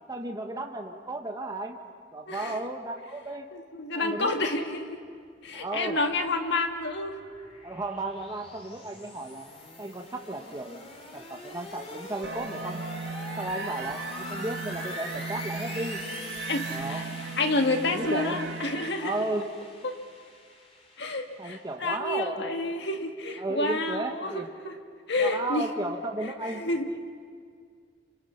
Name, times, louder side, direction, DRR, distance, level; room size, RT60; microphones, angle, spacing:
voice 1, 0.1-1.8 2.1-3.5 3.9-4.4 5.5-6.0 7.6-9.5 9.8-12.8 13.4-16.0 16.7-17.1 17.8-18.4 19.0-19.5 21.4-22.4 23.4-24.5 25.2-26.6, right 2 dB, 20° right, 3 dB, 1.2 m, -34 dB
voice 2, 2.3-2.6 3.5-5.0 5.4-7.2 16.5-19.2 19.8-20.0 21.0-24.7 25.1-25.7 26.2-26.9, left 2 dB, 65° left, 5 dB, 1.9 m, -29 dB
sound 1, 5.9-21.8, left 2 dB, 35° left, 3.0 m, -44 dB
sound 2, 12.2-18.9, right 4 dB, 65° right, 1.7 m, -37 dB
29.0 x 26.0 x 5.8 m, 2.1 s
head